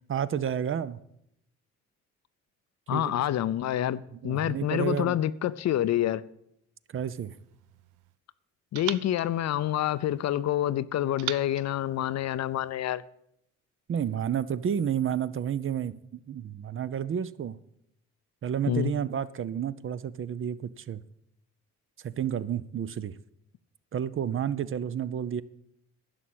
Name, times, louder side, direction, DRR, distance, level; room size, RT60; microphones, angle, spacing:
voice 1, 0.1-1.0 2.9-3.1 4.1-5.2 6.9-7.3 13.9-17.6 18.4-21.0 22.0-23.2 23.9-25.4, right 9 dB, 45° right, 0.6 m, -31 dB
voice 2, 2.9-6.2 8.7-13.0 18.7-18.9, left 12 dB, 60° left, 0.6 m, -27 dB
sound 1, 6.9-8.2 8.7-10.4 11.2-12.8, right 14 dB, 90° right, 0.6 m, -42 dB
11.5 x 6.3 x 8.7 m
cardioid pair, 90°, 30 cm